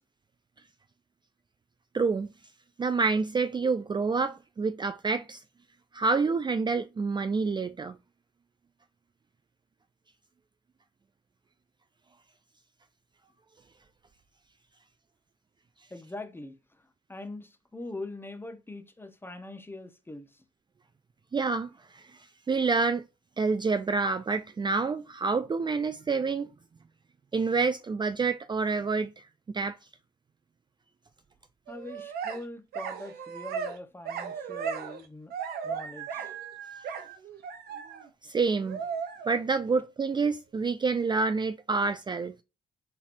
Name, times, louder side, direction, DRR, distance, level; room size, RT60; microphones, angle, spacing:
voice 1, 1.9-2.3 2.8-5.4 5.9-8.0 21.3-22.1 22.5-23.0 23.4-26.5 27.3-29.2 29.5-29.8 38.2-38.8 39.3-42.4, right 4 dB, 30° right, 0.4 m, -28 dB
voice 2, 15.9-20.4 31.7-35.3 35.6-36.3, left 2 dB, 15° left, 1.0 m, -42 dB
sound 1, 31.7-32.4 32.7-33.8 34.0-35.0 35.3-38.1 38.6-39.5, right 6 dB, 90° right, 0.8 m, -36 dB
4.3 x 4.0 x 2.6 m
cardioid pair, 65°, 16 cm